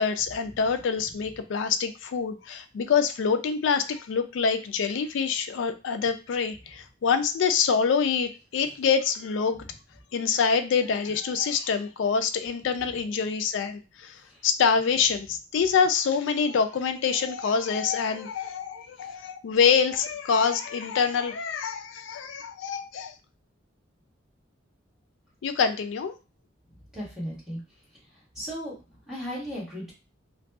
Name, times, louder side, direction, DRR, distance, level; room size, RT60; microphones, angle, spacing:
voice 1, 0.0-9.7 10.1-23.1 25.4-26.1, left 6 dB, 70° left, 8 dB, 0.3 m, -26 dB
voice 2, 26.9-27.6 28.3-28.7 29.1-29.9, equal, 5° right, -7 dB, 1.5 m, -35 dB
2.6 x 2.2 x 2.3 m, 0.31 s
head